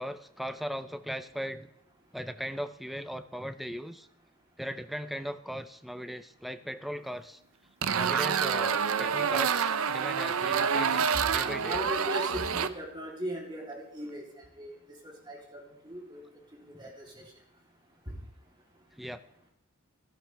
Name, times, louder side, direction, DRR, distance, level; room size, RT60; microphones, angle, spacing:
voice 1, 0.0-1.7 2.1-4.1 4.6-7.4 8.0-11.9 16.7-16.8 19.0-19.2, equal, ahead, 10 dB, 0.5 m, -38 dB
sound 1, 7.8-12.7, right 6 dB, 75° right, 0.6 m, -27 dB
voice 2, 11.6-14.2 14.6-14.7 15.0-16.2 16.6-17.2 18.1-18.2, equal, 20° right, -2 dB, 3.3 m, -38 dB
16.5 x 12.5 x 3.5 m, 0.75 s
head